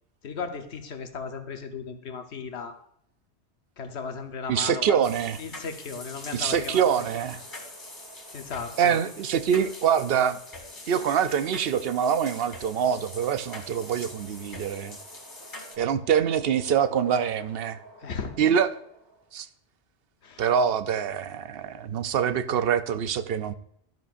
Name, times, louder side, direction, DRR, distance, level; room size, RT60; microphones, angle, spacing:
voice 1, 0.2-2.8 3.8-5.0 5.4-7.0 8.3-9.0 18.0-18.3 20.2-20.4, left 5 dB, 75° left, 7 dB, 1.3 m, -36 dB
voice 2, 4.5-5.4 6.3-7.4 8.8-10.4 10.9-15.0 15.8-17.8 18.4-18.7 19.3-19.5 20.4-23.5, right 8 dB, 65° right, 12 dB, 0.8 m, -25 dB
sound 1, 5.0-15.8, left 2 dB, 45° left, 2.2 m, -44 dB
sound 2, 6.9-19.4, right 2 dB, 20° right, 2.2 m, -53 dB
12.5 x 10.5 x 2.5 m, 0.70 s
omnidirectional pair, 1.1 m